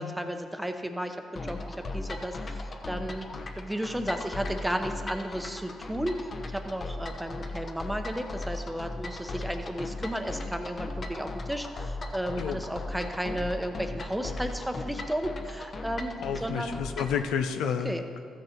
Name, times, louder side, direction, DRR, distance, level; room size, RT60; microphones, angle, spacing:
voice 1, 0.0-2.6 2.9-3.2 3.6-16.1 16.4-16.7 17.7-18.0, equal, 5° right, 6 dB, 0.8 m, -33 dB
sound 1, 1.4-17.2, left 2 dB, 40° left, 0.9 m, -37 dB
voice 2, 16.2-18.2, left 7 dB, 90° left, 7 dB, 0.6 m, -31 dB
14.0 x 6.5 x 4.5 m, 2.1 s
cardioid pair, 90°, 0 cm